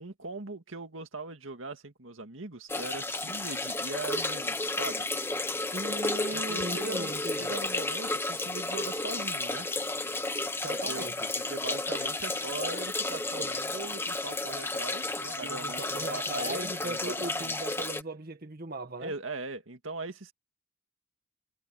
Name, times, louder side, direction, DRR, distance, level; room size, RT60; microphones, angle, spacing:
voice 1, 0.0-5.1 6.3-9.7 10.9-11.1 11.5-17.6 19.0-20.3, right 3 dB, 75° right, 2.1 m, -40 dB
sound 1, 2.7-18.0, left 2 dB, 10° left, 1.1 m, -32 dB
voice 2, 5.7-7.5 10.6-11.3 15.4-19.1, right 1 dB, 50° right, 1.9 m, -38 dB
head